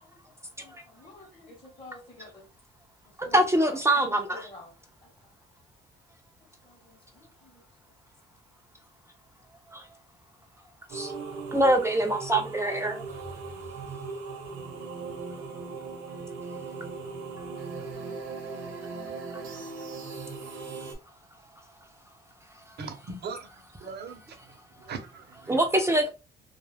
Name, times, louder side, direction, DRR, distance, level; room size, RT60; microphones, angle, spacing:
voice 1, 0.0-2.5 3.1-4.7 5.0-5.1 6.6-7.6, left 2 dB, 25° left, 1.0 m, -50 dB
voice 2, 3.2-4.5 9.7-9.8 10.9-11.1 11.5-13.0 25.5-26.1, right 1 dB, 15° right, 0.5 m, -24 dB
sound 1, 10.9-20.9, right 4 dB, 85° right, 0.8 m, -38 dB
voice 3, 22.8-25.7, right 5 dB, 55° right, 0.7 m, -41 dB
2.3 x 2.1 x 3.3 m
cardioid pair, 90°, 20 cm